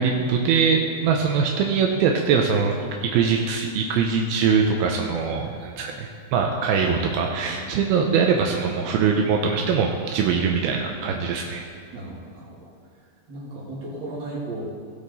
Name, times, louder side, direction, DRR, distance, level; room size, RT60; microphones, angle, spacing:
voice 1, 0.0-2.8 3.0-11.6, right 6 dB, 80° right, 1 dB, 2.5 m, -22 dB
voice 2, 5.3-5.8 7.5-7.7 10.3-11.5 11.9-12.7 13.3-14.6, right 2 dB, 30° right, -7 dB, 3.2 m, -37 dB
17.0 x 6.6 x 4.1 m, 2.2 s
omnidirectional pair, 4.5 m